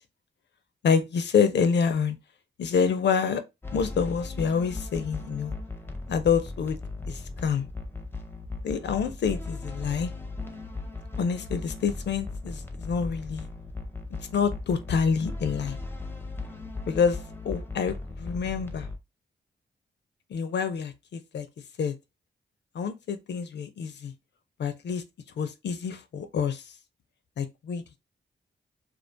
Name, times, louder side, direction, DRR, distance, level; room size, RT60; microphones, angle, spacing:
voice 1, 0.8-2.2 2.6-3.4 3.7-5.5 6.1-6.8 7.1-7.6 8.6-10.1 11.2-13.5 14.3-15.8 16.9-18.9 20.3-21.5 21.8-21.9 22.7-24.1 24.6-25.0 25.4-26.6 27.4-27.8, left 6 dB, 60° left, 0.4 m, -27 dB
sound 1, 3.6-19.0, left 3 dB, 10° left, 0.5 m, -37 dB
2.3 x 2.2 x 2.5 m
cardioid pair, 60°, 20 cm